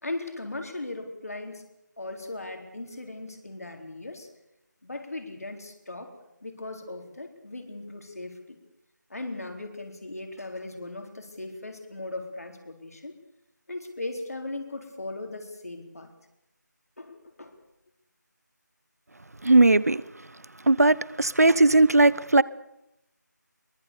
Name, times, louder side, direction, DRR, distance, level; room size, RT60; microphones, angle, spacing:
voice 1, 0.0-1.6 2.0-4.3 4.8-6.1 6.4-8.6 9.1-13.2 13.7-16.1 17.0-17.5, left 2 dB, 55° left, 4.1 m, -38 dB
voice 2, 19.4-20.0 20.7-22.4, right 2 dB, 55° right, 0.9 m, -18 dB
23.0 x 22.0 x 7.0 m
figure-of-eight pair, 165°, 10 cm